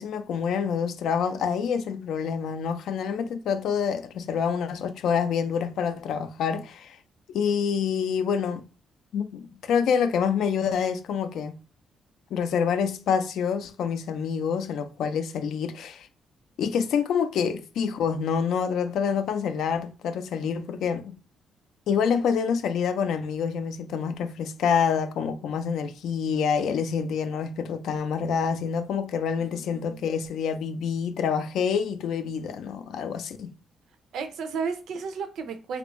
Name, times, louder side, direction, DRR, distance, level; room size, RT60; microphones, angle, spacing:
voice 1, 0.0-7.0 7.3-8.6 9.1-11.6 12.3-16.1 16.6-21.2 21.9-33.5, left 7 dB, 70° left, 0.4 m, -27 dB
voice 2, 29.4-30.0 34.1-35.8, right 5 dB, 70° right, 0.5 m, -33 dB
3.4 x 2.5 x 3.0 m
cardioid pair, 165°, 0 cm